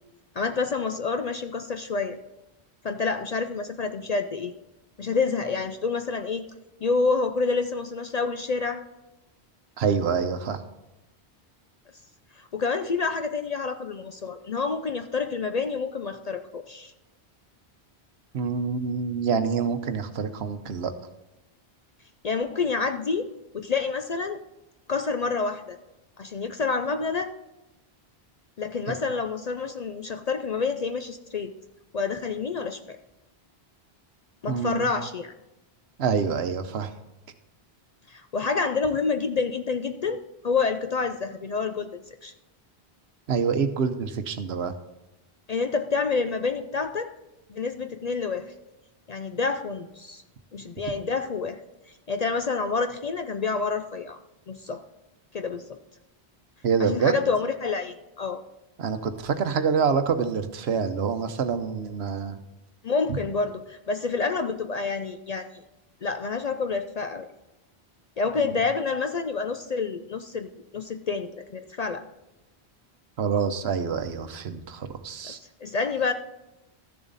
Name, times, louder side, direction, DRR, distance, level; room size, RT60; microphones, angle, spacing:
voice 1, 0.4-2.2 2.8-4.5 5.0-6.4 6.8-8.8 12.4-16.9 22.2-23.3 23.5-24.4 24.9-25.8 26.2-27.3 28.6-31.5 31.9-33.0 34.4-35.3 38.1-41.9 42.2-42.3 45.5-47.1 47.5-48.5 49.1-50.2 50.5-51.6 52.1-54.2 54.5-54.8 55.3-55.6 56.8-58.4 62.8-65.6 66.0-67.3 68.2-72.0 75.2-76.1, left 4 dB, 50° left, 8 dB, 0.5 m, -28 dB
voice 2, 9.8-10.6 18.3-20.9 28.9-29.0 34.5-34.9 36.0-36.9 43.3-44.7 56.6-57.1 58.8-62.4 68.4-68.5 73.2-75.4, right 6 dB, 75° right, 9 dB, 1.1 m, -26 dB
13.5 x 7.1 x 4.0 m, 0.97 s
omnidirectional pair, 1.1 m